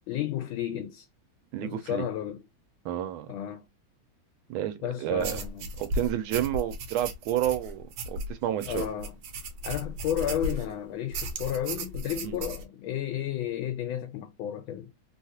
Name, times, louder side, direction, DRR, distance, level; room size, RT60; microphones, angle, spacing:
voice 1, 0.1-1.1 1.6-2.4 3.3-3.6 4.8-5.7 8.6-9.2 9.6-14.9, left 10 dB, 75° left, 1.3 m, -32 dB
voice 2, 1.5-2.1 2.8-3.3 4.5-5.4 5.8-8.9 12.2-12.4, right 11 dB, 85° right, 1.4 m, -30 dB
sound 1, 5.2-10.7 11.1-12.6, right 1 dB, 70° right, 1.3 m, -35 dB
3.5 x 2.4 x 2.7 m
omnidirectional pair, 2.3 m